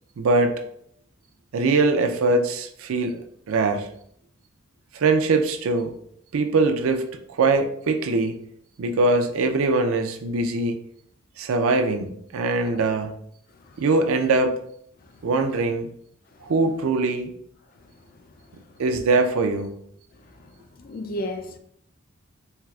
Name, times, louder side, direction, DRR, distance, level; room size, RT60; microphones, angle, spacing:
voice 1, 0.2-0.6 1.5-3.2 3.5-3.9 4.9-5.9 6.3-7.0 7.3-8.4 8.8-10.8 11.4-13.1 13.8-14.6 15.2-15.9 16.4-17.4 18.8-19.7, right 3 dB, 85° right, 0.4 m, -22 dB
voice 2, 20.8-21.6, left 1 dB, 45° left, 0.4 m, -32 dB
4.4 x 2.4 x 2.3 m
head